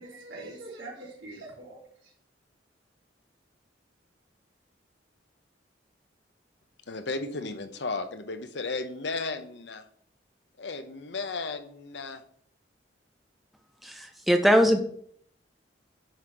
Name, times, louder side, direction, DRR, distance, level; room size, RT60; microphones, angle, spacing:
voice 1, 0.0-2.1, right 2 dB, 85° right, -4 dB, 3.7 m, -43 dB
voice 2, 6.9-9.8 10.6-12.2, left 3 dB, 70° left, 9 dB, 0.9 m, -34 dB
voice 3, 13.8-14.8, equal, ahead, 5 dB, 0.6 m, -21 dB
10.0 x 4.1 x 4.9 m, 0.62 s
head